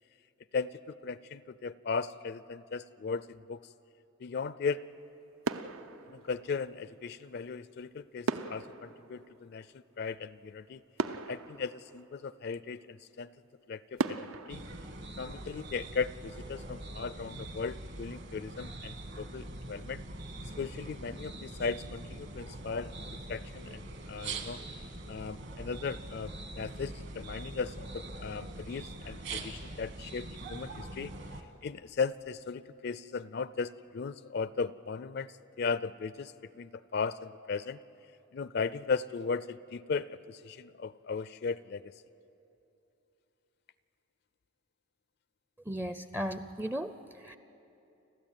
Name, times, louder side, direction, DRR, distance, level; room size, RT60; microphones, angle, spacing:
voice 1, 0.5-3.6 4.2-4.8 6.1-10.8 11.3-13.3 13.7-14.6 15.2-20.0 20.6-22.9 23.3-24.6 25.1-31.1 31.6-35.3 35.6-37.8 38.3-41.9, left 5 dB, 50° left, 17 dB, 0.4 m, -37 dB
sound 1, 4.8-5.1 5.4-6.9 8.3-10.2 10.6-10.7 11.0-12.6 13.1-13.2 14.0-15.9 16.2-16.4, right 4 dB, 80° right, 0.7 m, -38 dB
sound 2, 14.5-31.4, right 2 dB, 55° right, 1.6 m, -43 dB
voice 2, 45.7-47.4, equal, 10° right, 10 dB, 0.4 m, -36 dB
29.5 x 12.5 x 9.0 m, 2.9 s
head